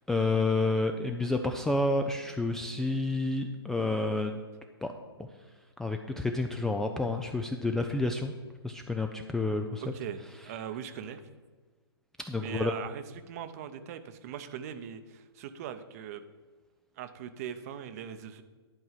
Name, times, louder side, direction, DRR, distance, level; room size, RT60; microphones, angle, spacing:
voice 1, 0.1-4.3 4.8-4.9 5.8-8.3 8.6-9.8 12.3-12.7, left 2 dB, 5° left, 4 dB, 0.3 m, -29 dB
voice 2, 9.8-11.2 12.4-16.2 17.0-18.4, right 8 dB, 35° right, 10 dB, 0.8 m, -40 dB
11.5 x 4.6 x 7.4 m, 1.4 s
figure-of-eight pair, 130°, 13 cm